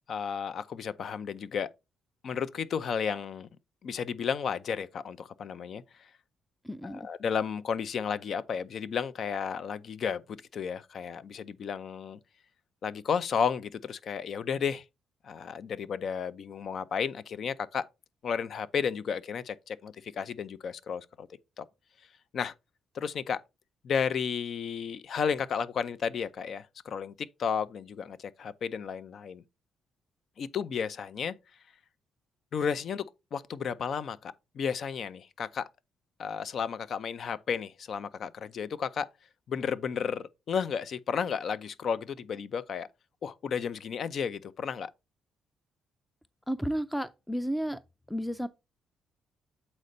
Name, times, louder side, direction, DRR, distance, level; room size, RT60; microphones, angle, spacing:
voice 1, 0.1-1.7 2.2-3.5 3.8-6.1 6.8-12.2 12.8-14.8 15.2-17.9 18.2-21.3 21.6-21.7 22.3-22.5 22.9-23.4 23.8-29.4 30.4-31.3 32.5-35.7 36.2-39.1 39.5-42.9 43.2-44.9, left 6 dB, 60° left, 0.6 m, -33 dB
voice 2, 6.6-7.1 46.5-47.8 48.1-48.5, equal, 5° left, 0.4 m, -32 dB
8.0 x 4.3 x 3.9 m
cardioid pair, 90°, 0 cm